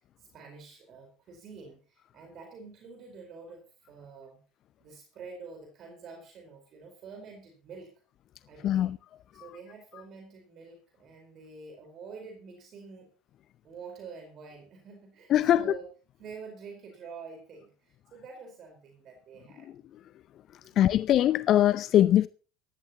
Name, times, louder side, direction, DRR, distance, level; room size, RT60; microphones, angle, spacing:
voice 1, 0.2-4.4 4.8-7.9 8.5-8.9 9.3-13.1 13.6-15.9 16.2-19.7 20.7-21.0, right 5 dB, 40° right, 4.5 m, -47 dB
voice 2, 8.6-9.0 9.4-9.5 15.3-15.7 20.8-22.3, left 12 dB, 45° left, 0.6 m, -22 dB
18.0 x 15.0 x 3.0 m
figure-of-eight pair, 70°, 0 cm